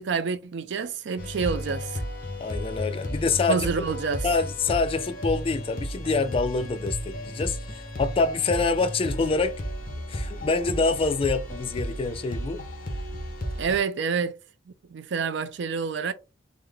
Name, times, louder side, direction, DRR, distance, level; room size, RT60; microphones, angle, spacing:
voice 1, 0.0-2.0 3.5-4.2 13.6-14.4 14.9-16.1, right 5 dB, 70° right, 0.4 m, -28 dB
sound 1, 1.2-13.8, equal, 50° left, 0.8 m, -33 dB
voice 2, 2.4-3.7 4.2-9.6 10.1-12.6, left 4 dB, 30° left, 0.3 m, -26 dB
3.6 x 2.1 x 3.3 m
head